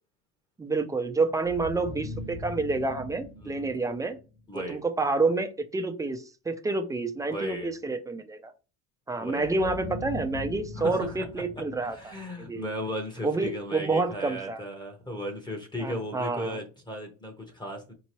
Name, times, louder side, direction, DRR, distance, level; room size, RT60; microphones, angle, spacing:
voice 1, 0.6-4.2 4.5-8.5 9.1-12.7 13.2-14.6 15.8-16.6, right 3 dB, 10° right, 7 dB, 0.4 m, -29 dB
sound 1, 1.4-4.4 9.4-12.6, left 2 dB, 40° left, 0.6 m, -40 dB
voice 2, 3.4-3.8 4.5-4.8 7.3-7.7 9.2-9.7 10.8-11.2 11.8-17.9, equal, 15° left, 3 dB, 0.9 m, -36 dB
4.4 x 2.9 x 2.9 m, 0.32 s
supercardioid pair, 120°, 34 cm